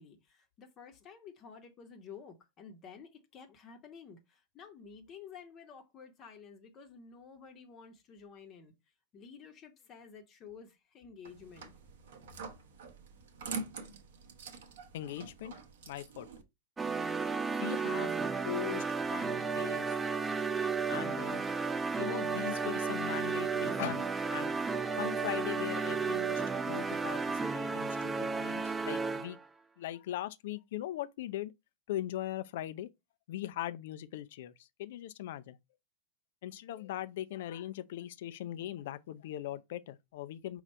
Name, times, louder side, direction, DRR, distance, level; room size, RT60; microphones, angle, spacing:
voice 1, 0.0-8.7 9.1-11.7, left 6 dB, 35° left, 0.9 m, -52 dB
sound 1, 11.2-16.4, right 4 dB, 60° right, 0.8 m, -45 dB
voice 2, 14.9-15.5 15.9-16.3 17.5-20.0 20.9-21.4 22.0-24.6 25.0-29.4 29.8-31.5 31.9-32.9 33.3-35.6 36.4-40.6, left 13 dB, 60° left, 0.4 m, -40 dB
sound 2, 16.8-29.4, right 4 dB, 15° right, 0.4 m, -33 dB
5.2 x 2.4 x 4.2 m
figure-of-eight pair, 90°, 0 cm